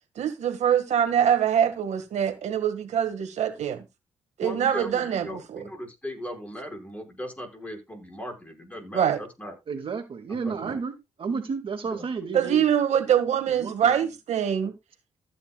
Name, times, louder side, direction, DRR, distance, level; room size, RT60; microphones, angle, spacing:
voice 1, 0.1-3.8 4.4-5.6 8.9-9.2 10.6-10.7 12.3-14.7, right 9 dB, 75° right, 1.8 m, -24 dB
voice 2, 4.4-9.6 10.3-10.8 11.9-12.1, equal, 10° left, 5.3 m, -38 dB
voice 3, 9.7-10.9 11.2-12.6 13.5-14.0, right 5 dB, 45° right, 2.1 m, -32 dB
15.0 x 9.7 x 2.4 m
cardioid pair, 105°, 12 cm